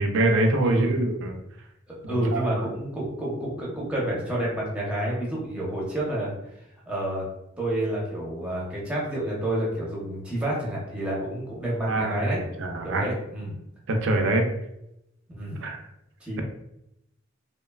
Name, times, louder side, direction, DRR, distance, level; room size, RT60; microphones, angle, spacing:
voice 1, 0.0-1.4 2.0-2.7 11.8-13.1 13.9-14.5 15.6-15.8, right 2 dB, 65° right, 4 dB, 0.4 m, -24 dB
voice 2, 0.6-1.1 1.9-6.3 6.6-7.2 7.6-12.4 12.8-13.5 15.3-15.6 16.2-16.4, right 1 dB, 5° right, -6 dB, 0.7 m, -29 dB
3.0 x 2.1 x 2.2 m, 0.83 s
head